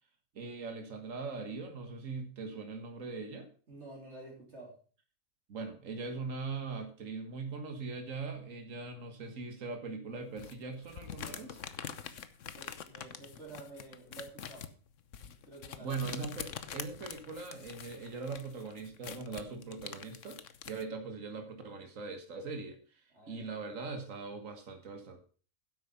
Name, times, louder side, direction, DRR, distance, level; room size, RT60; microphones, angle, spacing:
voice 1, 0.4-3.5 5.5-11.6 15.8-22.8 23.3-25.2, right 4 dB, 70° right, 6 dB, 1.9 m, -41 dB
voice 2, 3.7-4.7 12.5-14.7 15.2-16.0 23.1-23.6, right 2 dB, 55° right, -1 dB, 3.6 m, -50 dB
sound 1, 10.4-20.8, left 8 dB, 70° left, 1.2 m, -45 dB
10.5 x 8.2 x 5.6 m, 0.39 s
omnidirectional pair, 1.4 m